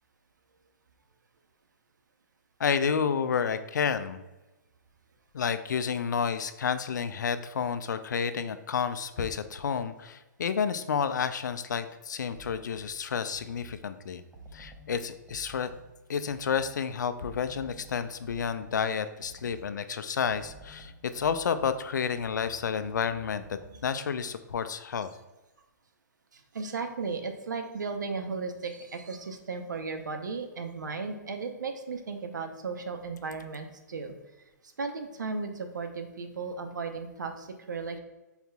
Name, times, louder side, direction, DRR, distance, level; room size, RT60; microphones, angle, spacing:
voice 1, 2.6-4.2 5.3-14.2 14.5-15.7 16.1-23.4 23.8-25.1, left 6 dB, 75° left, 11 dB, 0.4 m, -30 dB
sound 1, 12.3-13.9 14.3-16.8 17.3-19.8 20.2-24.0, right 1 dB, 15° right, 0.7 m, -51 dB
voice 2, 26.3-34.1 34.8-38.0, right 4 dB, 80° right, 6 dB, 0.7 m, -35 dB
5.7 x 4.0 x 2.3 m, 1.1 s
hypercardioid pair, 125°, 10 cm